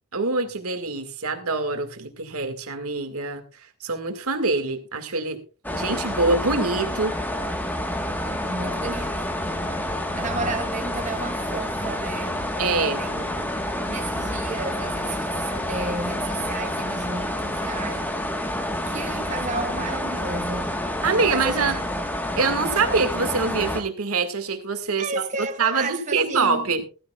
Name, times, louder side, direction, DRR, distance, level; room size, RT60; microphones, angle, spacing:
voice 1, 0.1-5.4 5.7-7.2 12.6-13.0 21.0-21.8 22.4-26.8, right 4 dB, 80° right, 1.9 m, -25 dB
sound 1, 5.6-23.8, left 1 dB, 10° left, 1.3 m, -28 dB
voice 2, 8.5-9.2 9.9-13.5 13.8-18.1 18.8-20.7 21.3-21.7 25.0-26.7, right 3 dB, 35° right, 0.7 m, -33 dB
15.5 x 14.5 x 2.3 m
head